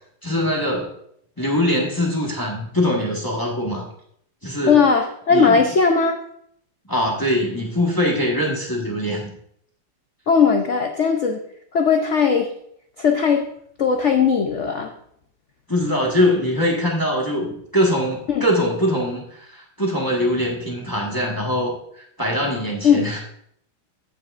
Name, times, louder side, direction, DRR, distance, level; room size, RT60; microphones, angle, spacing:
voice 1, 0.2-0.9 1.4-3.9 4.4-4.8 5.3-5.6 6.9-9.3 15.7-23.2, left 1 dB, 15° left, -2 dB, 1.1 m, -22 dB
voice 2, 4.7-6.2 10.3-11.4 11.7-12.5 13.0-13.5 13.8-14.9 18.3-18.4 22.8-23.1, left 6 dB, 85° left, 4 dB, 0.6 m, -18 dB
14.5 x 5.8 x 2.5 m, 0.69 s
omnidirectional pair, 2.2 m